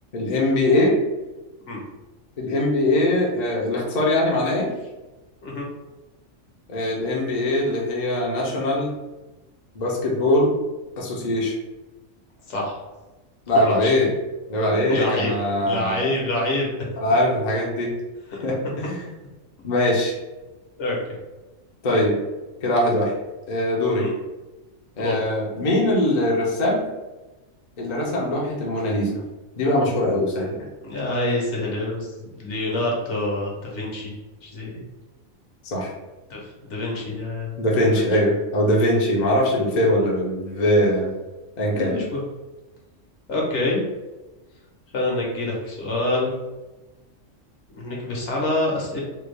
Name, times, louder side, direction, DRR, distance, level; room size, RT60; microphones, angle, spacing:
voice 1, 0.1-0.9 2.4-4.7 6.7-8.9 9.7-10.5 11.0-11.5 13.5-14.1 14.5-16.1 17.0-17.9 18.4-19.0 19.6-20.1 21.8-22.1 22.6-23.1 23.5-24.1 25.0-26.9 27.8-29.2 29.6-30.7 35.6-35.9 37.6-41.1 41.6-41.9, left 1 dB, 45° left, -3 dB, 0.6 m, -21 dB
voice 2, 12.5-12.8 13.5-13.9 14.9-15.3 15.7-16.7 18.3-18.4 20.8-21.0 24.0-24.1 25.0-25.2 30.8-34.2 34.4-34.8 36.3-36.4 36.7-38.1 41.7-42.2 43.3-43.8 44.9-46.3 47.7-49.0, left 2 dB, 65° left, -2 dB, 1.1 m, -26 dB
3.3 x 2.2 x 3.2 m, 1.1 s
omnidirectional pair, 1.4 m